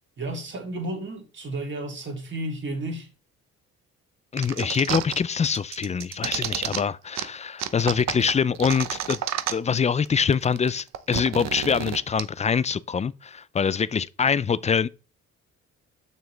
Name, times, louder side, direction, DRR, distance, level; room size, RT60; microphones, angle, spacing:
voice 1, 0.2-3.1, right 1 dB, 40° right, 3.1 m, -32 dB
voice 2, 4.3-9.2 9.5-14.9, left 6 dB, 25° left, 0.3 m, -24 dB
sound 1, 4.4-5.2 5.4-6.8 7.1-7.2 7.6-9.8 10.1-10.2 10.3-12.2, right 10 dB, 60° right, 0.8 m, -30 dB
6.9 x 6.4 x 3.4 m
cardioid pair, 90°, 30 cm